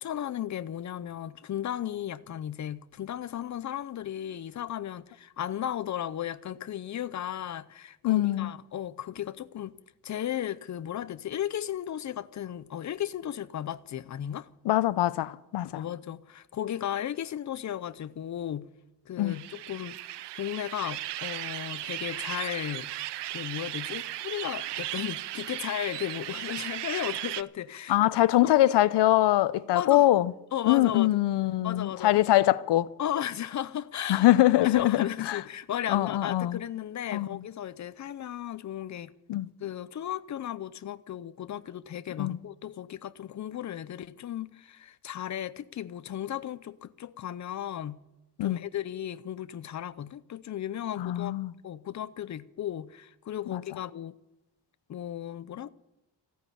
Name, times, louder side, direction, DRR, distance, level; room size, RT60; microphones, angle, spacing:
voice 1, 0.0-9.7 10.0-14.5 15.7-18.7 19.1-20.0 20.3-22.9 23.3-27.9 29.7-30.1 30.5-31.2 31.6-32.1 33.0-34.3 34.6-39.1 39.6-48.0 48.4-51.3 51.6-54.1 54.9-55.7, left 11 dB, 45° left, 0.7 m, -35 dB
voice 2, 8.0-8.5 14.6-15.8 19.2-19.4 27.9-30.3 30.6-32.9 34.1-35.4 35.9-36.6 37.1-37.3 39.3-39.5 42.2-42.4 48.4-48.6 51.0-51.5 53.5-53.6, left 15 dB, 85° left, 0.7 m, -23 dB
sound 1, 19.3-27.4, right 15 dB, 90° right, 0.6 m, -36 dB
15.5 x 9.4 x 8.5 m
wide cardioid pair, 155°, 40 cm